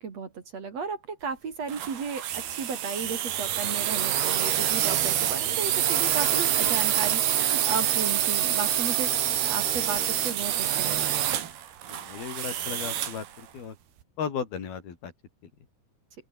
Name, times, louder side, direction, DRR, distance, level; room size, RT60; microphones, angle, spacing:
voice 1, 0.0-9.1 9.4-11.1, right 5 dB, 45° right, 3.5 m, -34 dB
sound 1, 1.7-13.3, right 11 dB, 75° right, 4.1 m, -26 dB
voice 2, 11.9-13.8 14.2-15.1, left 7 dB, 70° left, 5.5 m, -35 dB
open air
omnidirectional pair, 4.6 m